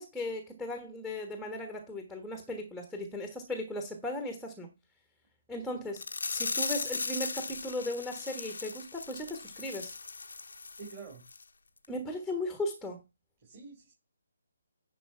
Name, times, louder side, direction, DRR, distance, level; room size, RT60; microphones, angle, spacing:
voice 1, 0.0-4.7 5.5-6.0 6.3-9.9 11.9-13.0, left 1 dB, ahead, 1.4 m, -37 dB
sound 1, 6.0-11.0 11.3-11.4 11.8-11.9, left 4 dB, 65° left, 1.0 m, -37 dB
voice 2, 10.8-11.2 13.4-13.9, right 5 dB, 30° right, 4.0 m, -47 dB
11.0 x 4.8 x 4.5 m
figure-of-eight pair, 140°, 0 cm